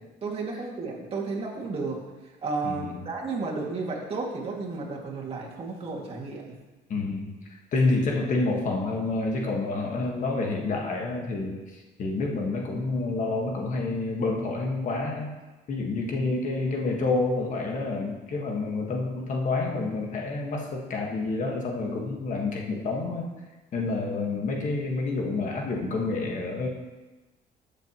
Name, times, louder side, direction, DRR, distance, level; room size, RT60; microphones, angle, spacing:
voice 1, 0.2-2.0 2.4-6.5, right 3 dB, 35° right, -3 dB, 2.3 m, -32 dB
voice 2, 2.6-3.0 6.9-7.3 7.7-11.6 12.0-15.4 15.7-23.3 23.7-26.7, left 3 dB, 50° left, 0 dB, 1.6 m, -28 dB
13.0 x 7.1 x 3.1 m, 1.2 s
cardioid pair, 110°, 17 cm